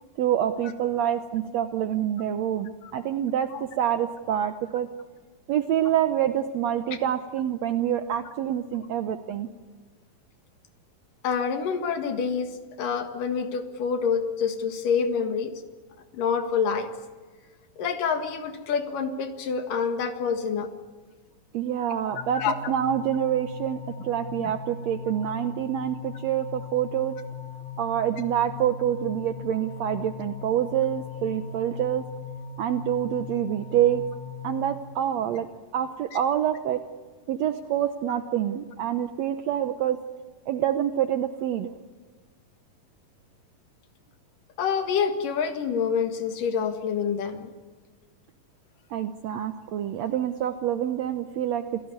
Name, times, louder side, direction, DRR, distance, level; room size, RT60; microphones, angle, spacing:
voice 1, 0.2-4.9 5.5-9.5 21.5-27.1 27.8-32.0 32.6-34.0 34.4-35.5 35.7-36.8 37.3-40.0 40.5-41.7 48.9-51.8, right 10 dB, 75° right, 9 dB, 1.6 m, -26 dB
voice 2, 11.2-12.5 12.8-15.5 16.1-16.9 17.8-20.7 22.3-22.5 24.4-24.5 44.6-47.5, left 6 dB, 70° left, 7 dB, 3.2 m, -27 dB
sound 1, 22.1-34.8, left 5 dB, 35° left, 1.2 m, -39 dB
28.0 x 17.0 x 9.7 m, 1.5 s
omnidirectional pair, 4.0 m